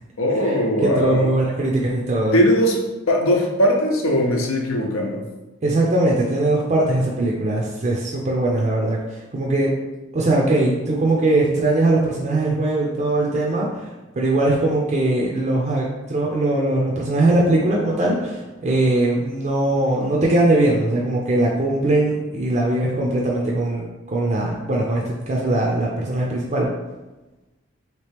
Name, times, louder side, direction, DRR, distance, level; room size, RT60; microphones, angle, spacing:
voice 1, 0.2-1.3 2.3-2.8 3.1-5.2, equal, 85° left, 1 dB, 0.7 m, -19 dB
voice 2, 0.8-2.4 5.6-9.7 10.1-13.9 14.2-26.7, right 2 dB, 35° right, -3 dB, 0.4 m, -20 dB
3.2 x 2.9 x 3.3 m, 1.1 s
head